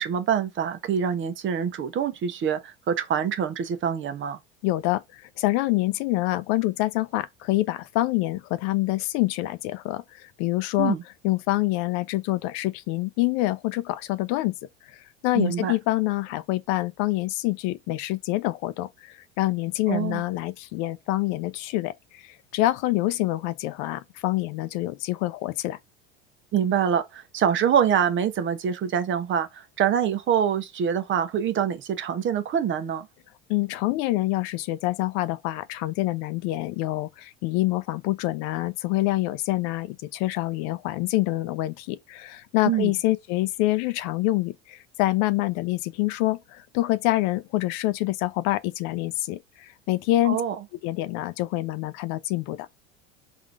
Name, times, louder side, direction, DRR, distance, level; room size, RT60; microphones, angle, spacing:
voice 1, 0.0-4.4 10.8-11.0 15.3-15.7 19.9-20.2 26.5-33.1 42.6-42.9 50.2-50.5, right 8 dB, 40° right, 0.8 m, -25 dB
voice 2, 4.6-11.0 11.2-14.5 14.9-25.8 33.5-50.4 50.8-52.7, left 17 dB, 60° left, 0.5 m, -26 dB
3.7 x 2.6 x 4.5 m
hypercardioid pair, 95°, 32 cm